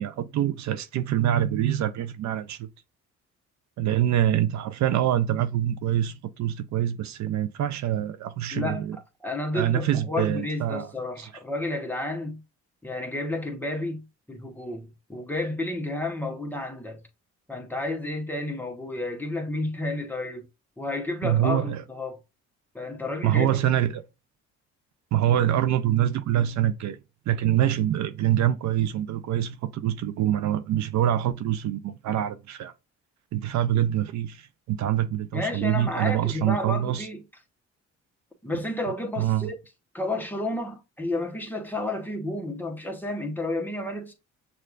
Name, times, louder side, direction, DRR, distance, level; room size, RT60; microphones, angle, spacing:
voice 1, 0.0-2.7 3.8-9.0 9.5-10.9 11.2-11.3 21.2-21.8 23.2-24.0 25.1-27.0 27.3-32.7 33.3-37.1 39.2-39.5, right 11 dB, 65° right, 0.5 m, -25 dB
voice 2, 8.5-12.4 12.8-17.0 17.5-20.5 20.8-22.2 22.7-23.6 35.3-37.2 38.4-39.6 39.9-44.1, left 2 dB, 5° left, 1.0 m, -31 dB
6.6 x 2.4 x 2.4 m
cardioid pair, 90°, 30 cm